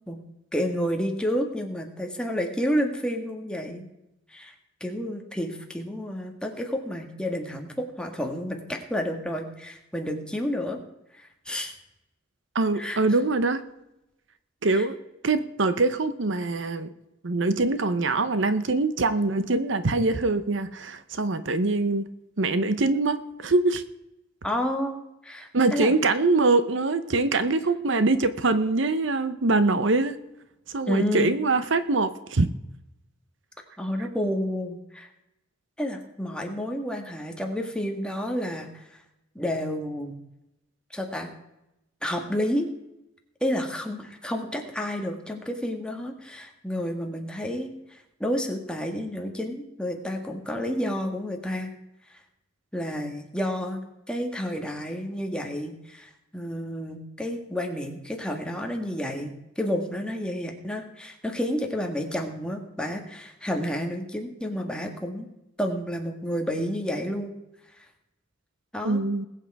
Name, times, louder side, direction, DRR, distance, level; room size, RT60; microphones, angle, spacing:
voice 1, 0.5-3.9 4.3-4.5 4.8-10.8 11.2-11.7 12.7-13.0 14.7-14.9 24.4-25.0 25.2-25.9 30.9-31.3 33.8-35.1 35.8-38.8 39.4-40.2 40.9-41.3 42.0-42.7 43.4-51.7 52.7-53.8 54.1-65.3 65.6-67.3 68.7-69.0, equal, 5° left, 3 dB, 1.8 m, -30 dB
voice 2, 12.5-13.6 14.6-15.0 15.2-16.9 17.2-22.1 22.4-23.8 25.5-30.2 30.7-32.5 68.8-69.3, right 3 dB, 65° right, 12 dB, 0.9 m, -23 dB
20.5 x 8.5 x 4.8 m, 0.89 s
head